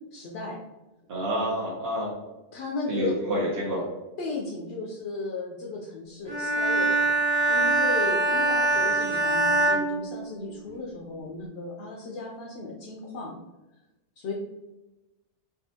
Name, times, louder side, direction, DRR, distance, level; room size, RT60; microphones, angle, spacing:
voice 1, 0.1-0.6 2.5-3.2 4.2-7.0 7.5-13.4 14.2-14.3, left 3 dB, 80° left, -3 dB, 0.8 m, -35 dB
voice 2, 1.1-2.1 2.9-3.8, equal, 75° right, -6 dB, 1.0 m, -28 dB
Bowed string instrument, 6.3-10.8, right 2 dB, 40° right, 1.1 m, -24 dB
3.5 x 2.4 x 2.7 m, 1.0 s
omnidirectional pair, 1.1 m